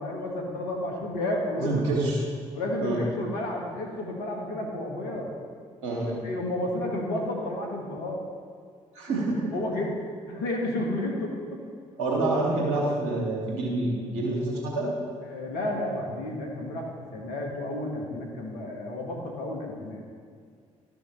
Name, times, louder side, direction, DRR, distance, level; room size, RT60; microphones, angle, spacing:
voice 1, 0.0-1.7 2.5-5.3 6.2-8.2 9.5-10.0 10.3-11.6 15.2-20.0, left 1 dB, 70° left, 1 dB, 1.8 m, -31 dB
voice 2, 1.6-2.2 2.8-3.0 5.8-6.2 8.9-9.5 12.0-14.9, right 2 dB, 75° right, -3 dB, 2.4 m, -27 dB
12.5 x 6.3 x 4.7 m, 2.1 s
hypercardioid pair, 45°, 16 cm